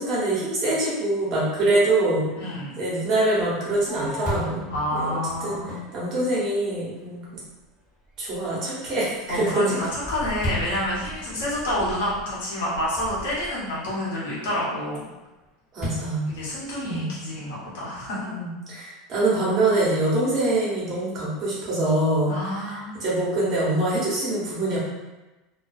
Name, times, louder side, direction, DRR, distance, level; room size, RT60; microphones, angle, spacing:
voice 1, 0.0-2.3 2.8-4.6 4.9-5.6 5.9-7.4 8.2-9.5 15.7-16.3 16.8-17.1 18.3-22.4 22.6-24.8, right 2 dB, 40° right, -6 dB, 1.0 m, -24 dB
voice 2, 2.4-2.7 4.7-5.8 9.3-15.0 16.3-18.3 22.3-22.9, left 1 dB, 85° left, -6 dB, 1.1 m, -28 dB
Fireworks, 3.4-6.9 7.4-7.5 8.0-8.4 8.9-13.7 15.8-17.1, equal, 10° left, 1.4 m, -36 dB
2.3 x 2.2 x 2.5 m, 1.1 s
supercardioid pair, 130°, 0 cm